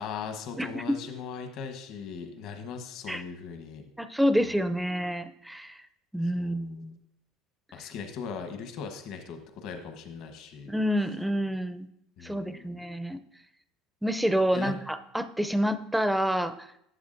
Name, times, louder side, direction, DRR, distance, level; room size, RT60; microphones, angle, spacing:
voice 1, 0.0-3.9 6.4-6.6 7.7-10.7 12.2-12.8 14.5-14.7, left 6 dB, 55° left, 6 dB, 1.0 m, -39 dB
voice 2, 4.0-5.8 6.1-7.0 10.7-11.9 12.2-13.2 14.0-16.7, equal, ahead, 11 dB, 0.4 m, -28 dB
11.5 x 7.1 x 2.5 m, 0.75 s
cardioid pair, 140°, 0 cm